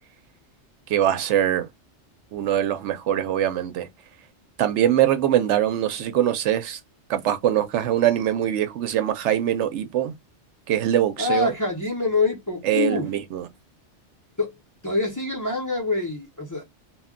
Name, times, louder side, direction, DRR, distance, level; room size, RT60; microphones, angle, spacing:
voice 1, 0.9-1.7 2.3-3.9 4.6-6.8 7.1-10.1 10.7-11.5 12.6-13.5, right 11 dB, 85° right, 0.9 m, -22 dB
voice 2, 11.2-13.1 14.4-14.5 14.8-16.7, left 3 dB, 20° left, 0.6 m, -25 dB
2.2 x 2.2 x 3.6 m
omnidirectional pair, 1.2 m